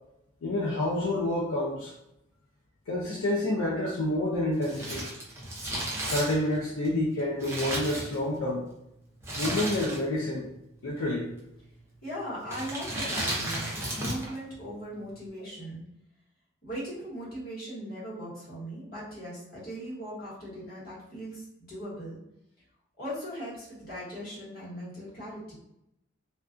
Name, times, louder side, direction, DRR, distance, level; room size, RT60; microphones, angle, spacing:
voice 1, 0.4-1.9 2.9-5.1 6.1-8.7 9.3-10.5 10.8-11.3, left 1 dB, 80° left, -3 dB, 0.4 m, -28 dB
Crumpling crinkling, 4.6-8.6 9.2-10.3 10.5-10.6 11.4-11.8 12.4-14.4 14.6-14.7, right 1 dB, 10° right, 0.5 m, -34 dB
voice 2, 12.0-15.8 16.6-22.2 23.0-25.5, equal, 45° left, -7 dB, 1.1 m, -39 dB
2.3 x 2.2 x 2.4 m, 0.83 s
head